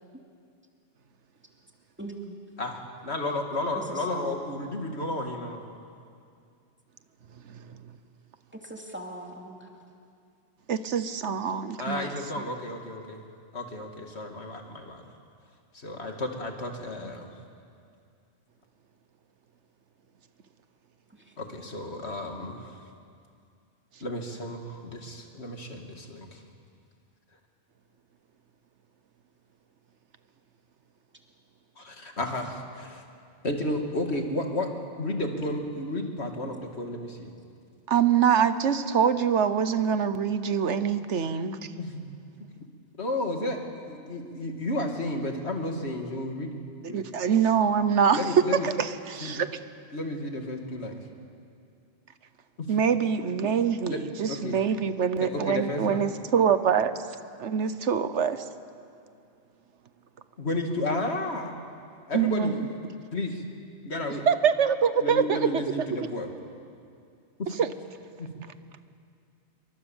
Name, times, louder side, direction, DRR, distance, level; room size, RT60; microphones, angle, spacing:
voice 1, 2.0-2.4 3.8-4.4 8.5-9.7 21.1-21.3, right 1 dB, 10° right, 1 dB, 2.7 m, -40 dB
voice 2, 2.6-5.6 11.8-13.2 13.5-15.1 15.7-17.3 21.4-22.8 24.0-26.4 31.8-33.0 33.4-34.7 35.0-37.3 41.8-42.0 43.0-43.6 43.8-46.5 46.9-47.0 48.1-48.7 49.2-49.4 49.9-51.0 52.6-52.7 53.4-53.5 53.9-54.0 54.3-54.6 55.2-56.0 60.4-61.5 62.1-62.5 63.1-63.4 63.8-64.3 65.0-66.3 67.4-67.6 68.2-68.3, left 1 dB, 65° left, 3 dB, 2.5 m, -32 dB
voice 3, 10.7-12.1 12.4-12.5 37.9-41.7 46.9-49.5 52.7-56.9 57.4-58.4 62.1-62.7 64.3-65.5 65.8-65.9 67.6-67.7, right 7 dB, 80° right, 12 dB, 1.3 m, -24 dB
27.5 x 23.5 x 7.2 m, 2.4 s
omnidirectional pair, 1.2 m